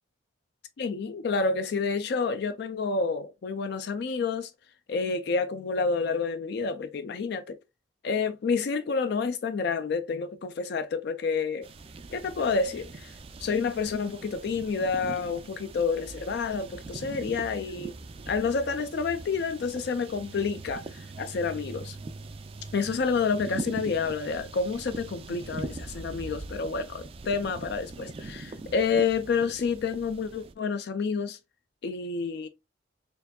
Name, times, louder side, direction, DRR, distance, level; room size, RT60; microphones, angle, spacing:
voice 1, 0.8-4.5 4.9-7.6 8.0-11.7 12.1-13.2 13.4-17.9 18.3-22.0 22.7-31.4 31.8-32.5, left 5 dB, 55° left, 0.3 m, -29 dB
sound 1, 11.6-30.5, right 3 dB, 30° right, 0.3 m, -42 dB
4.5 x 2.6 x 2.2 m
head